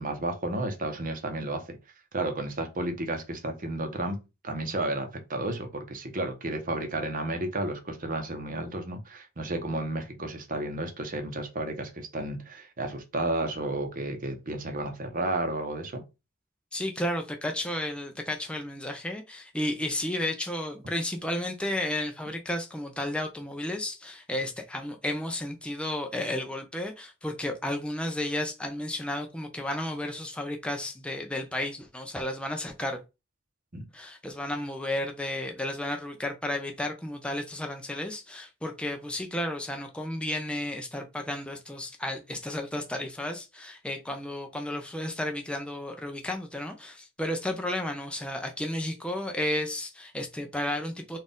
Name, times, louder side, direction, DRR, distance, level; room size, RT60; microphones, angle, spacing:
voice 1, 0.0-1.8 2.1-4.2 4.4-16.0 33.7-33.9, right 2 dB, 40° right, 0.9 m, -32 dB
voice 2, 16.7-33.0 33.9-51.2, left 1 dB, 5° left, 0.4 m, -33 dB
4.2 x 2.5 x 3.6 m
head